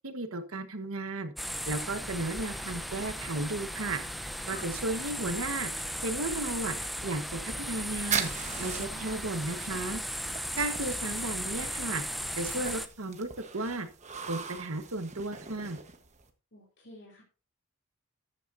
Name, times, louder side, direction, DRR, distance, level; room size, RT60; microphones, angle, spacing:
voice 1, 0.0-1.3 1.7-4.0 4.5-6.7 7.0-8.3 8.6-10.0 10.6-12.0 12.4-13.9 14.3-15.8, right 2 dB, 85° right, 8 dB, 1.4 m, -34 dB
sound 1, 1.4-12.9, equal, ahead, 0.7 m, -36 dB
sound 2, 7.6-16.3, right 7 dB, 35° right, 1.3 m, -40 dB
voice 2, 8.7-9.2 16.5-17.2, left 1 dB, 55° left, -3 dB, 3.1 m, -48 dB
14.0 x 10.5 x 2.7 m, 0.33 s
head